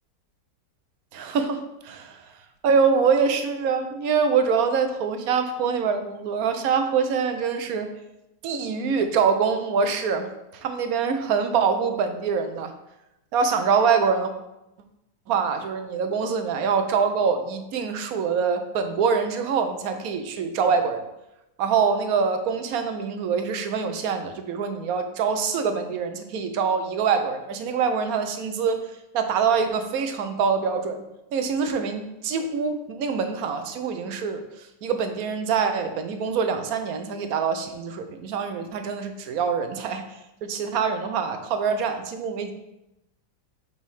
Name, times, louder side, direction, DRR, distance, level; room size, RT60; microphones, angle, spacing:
voice 1, 1.1-2.3 2.6-7.9 8.4-12.7 13.3-14.3 15.3-21.0 21.6-28.8 29.1-31.0 31.3-40.1 40.4-42.5, right 6 dB, 65° right, 7 dB, 1.0 m, -24 dB
4.8 x 4.1 x 5.5 m, 0.91 s
omnidirectional pair, 1.8 m